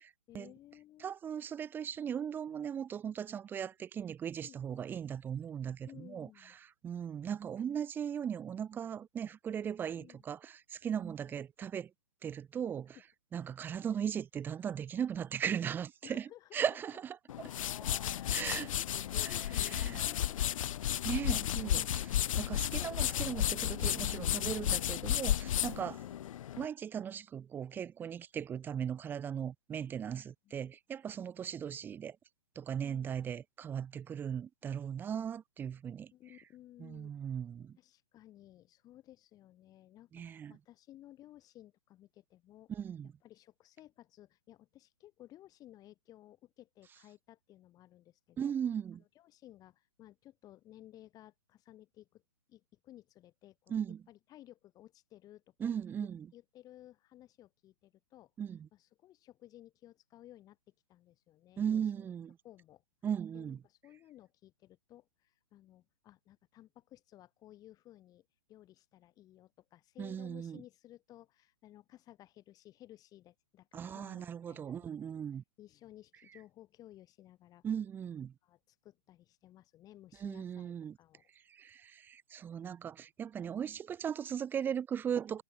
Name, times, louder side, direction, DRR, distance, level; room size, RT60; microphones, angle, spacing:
voice 1, 0.3-1.1 4.4-4.8 5.9-6.6 9.9-10.2 11.0-11.4 16.0-16.6 17.8-20.7 22.0-22.2 25.5-26.2 30.4-30.7 32.8-33.1 36.1-37.1 37.8-42.7 43.2-48.5 49.0-52.2 52.5-53.7 54.1-55.7 56.0-58.3 58.7-62.1 62.4-62.8 63.3-75.0 75.6-77.7 78.4-80.7 81.0-81.3, left 13 dB, 20° left, 7.8 m, -57 dB
voice 2, 1.0-6.3 6.8-11.9 12.2-12.9 13.3-16.3 16.5-17.5 18.3-18.7 19.2-19.3 19.7-19.9 21.0-22.1 22.4-25.9 26.6-32.2 32.6-36.1 36.8-37.8 40.1-40.6 42.7-43.1 48.4-49.0 53.7-54.0 55.6-56.3 58.4-58.7 61.6-62.4 63.0-63.6 70.0-70.6 73.7-75.4 77.6-78.3 80.2-81.0 81.5-85.4, right 8 dB, 10° right, 1.0 m, -38 dB
sound 1, 17.3-26.7, left 11 dB, 60° left, 0.4 m, -33 dB
hypercardioid pair, 155°, 19 cm